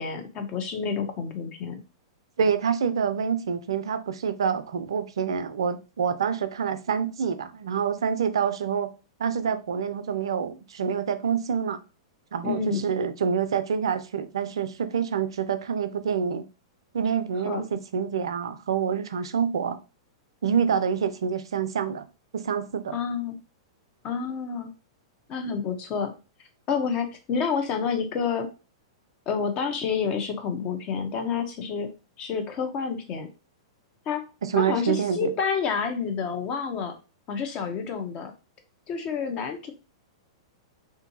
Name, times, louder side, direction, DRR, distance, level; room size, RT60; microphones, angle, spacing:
voice 1, 0.0-1.8 12.4-12.8 17.4-17.6 22.9-23.4 24.0-24.7 25.3-26.1 26.7-28.5 29.3-31.9 32.2-33.3 34.1-34.2 34.6-36.9 37.3-38.3 38.9-39.7, left 6 dB, 40° left, 0.7 m, -29 dB
voice 2, 2.4-8.9 9.2-11.8 12.3-16.5 16.9-19.8 20.4-22.1 22.3-23.0 34.4-35.3, right 7 dB, 80° right, 0.4 m, -27 dB
2.6 x 2.6 x 2.6 m
hypercardioid pair, 115°, 3 cm